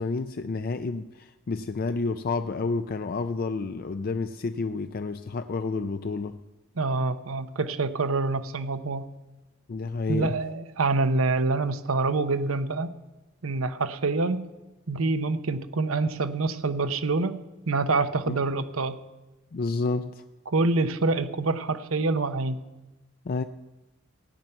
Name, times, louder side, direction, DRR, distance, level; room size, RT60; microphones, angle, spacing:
voice 1, 0.0-6.4 9.7-10.4 18.3-18.4 19.5-20.2 23.3-23.4, left 3 dB, 45° left, 0.4 m, -30 dB
voice 2, 6.8-9.1 10.1-12.9 13.4-14.5 14.9-17.4 17.7-19.0 20.5-22.6, right 3 dB, 90° right, 0.9 m, -26 dB
17.0 x 5.9 x 9.0 m
head